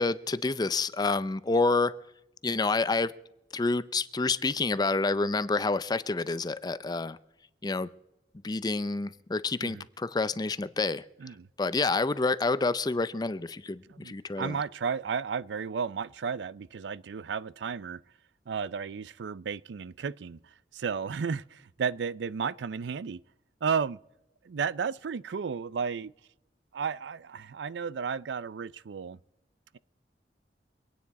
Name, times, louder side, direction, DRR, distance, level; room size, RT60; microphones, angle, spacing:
voice 1, 0.0-1.9 2.4-3.1 3.5-7.2 7.6-7.9 8.4-11.0 11.6-14.6, left 3 dB, 25° left, 0.5 m, -28 dB
voice 2, 13.9-18.0 18.5-23.2 23.6-24.0 24.4-26.1 26.7-29.2, right 6 dB, 85° right, 0.4 m, -33 dB
24.5 x 9.4 x 4.1 m
head